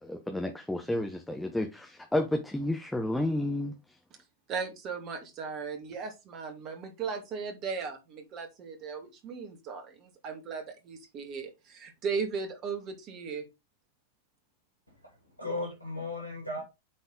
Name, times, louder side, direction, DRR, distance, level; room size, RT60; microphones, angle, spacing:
voice 1, 0.0-3.7, left 1 dB, 5° left, 0.9 m, -31 dB
voice 2, 4.5-13.4, right 5 dB, 35° right, 2.2 m, -37 dB
voice 3, 14.9-16.6, left 2 dB, 90° right, 2.8 m, -37 dB
8.6 x 4.1 x 3.9 m
figure-of-eight pair, 90°, 0 cm